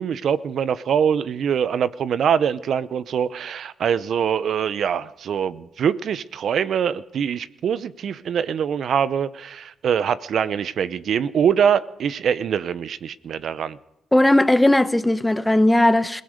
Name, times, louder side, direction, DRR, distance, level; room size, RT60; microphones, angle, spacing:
voice 1, 0.0-13.8, right 8 dB, 60° right, 0.8 m, -23 dB
voice 2, 14.1-16.2, left 1 dB, 10° left, 1.0 m, -17 dB
26.5 x 17.0 x 6.6 m
cardioid pair, 90°, 0 cm